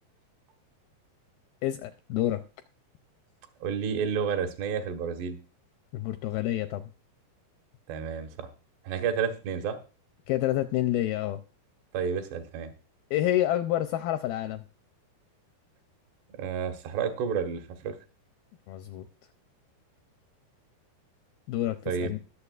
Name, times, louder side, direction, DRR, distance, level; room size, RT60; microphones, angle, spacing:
voice 1, 1.6-2.4 5.9-6.8 10.3-11.4 13.1-14.6 18.7-19.1 21.5-22.2, left 13 dB, 85° left, 9 dB, 2.1 m, -28 dB
voice 2, 3.6-5.4 7.9-8.5 8.8-9.8 11.9-12.7 16.4-18.0 21.9-22.1, right 6 dB, 80° right, 5 dB, 3.4 m, -30 dB
20.0 x 7.0 x 2.4 m, 0.33 s
omnidirectional pair, 4.8 m